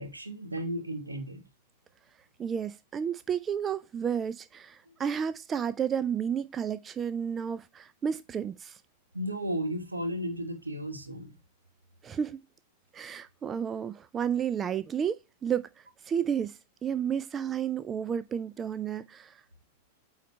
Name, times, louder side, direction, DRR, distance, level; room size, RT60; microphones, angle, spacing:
voice 1, 0.0-1.4 4.8-4.9 9.1-11.4, equal, 80° right, 1.3 m, -34 dB
voice 2, 2.4-8.8 12.0-12.4 12.9-15.7 16.0-19.4, right 8 dB, 25° right, 0.5 m, -32 dB
9.2 x 4.0 x 4.3 m
figure-of-eight pair, 90°, 0 cm